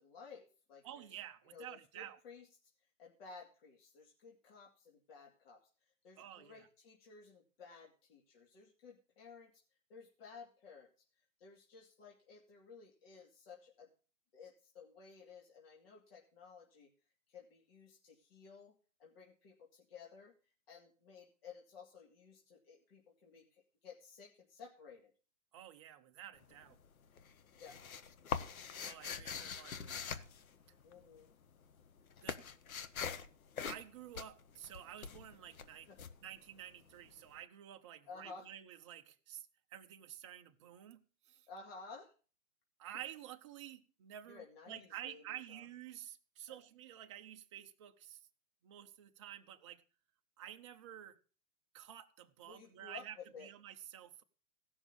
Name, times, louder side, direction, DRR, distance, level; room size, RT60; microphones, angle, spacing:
voice 1, 0.0-1.1 1.5-2.5 3.0-5.6 6.0-9.5 9.9-10.9 11.4-13.9 14.3-16.9 17.3-18.7 19.0-20.3 20.7-25.1 27.6-27.8 30.8-31.3 35.9-36.1 38.1-38.5 41.5-42.1 44.3-45.6 46.5-46.6 52.5-53.5, left 5 dB, 45° left, 2.8 m, -55 dB
voice 2, 0.8-2.2 6.2-6.7 25.5-26.8 28.8-30.3 32.2-32.4 33.6-35.9 36.2-41.5 42.8-48.2 48.6-49.8 50.4-51.2 51.7-54.2, right 11 dB, 20° right, 0.7 m, -51 dB
sound 1, 26.3-26.9 27.2-31.2 31.5-37.1, left 7 dB, 75° left, 1.3 m, -43 dB
16.5 x 6.3 x 6.8 m
hypercardioid pair, 155°, 42 cm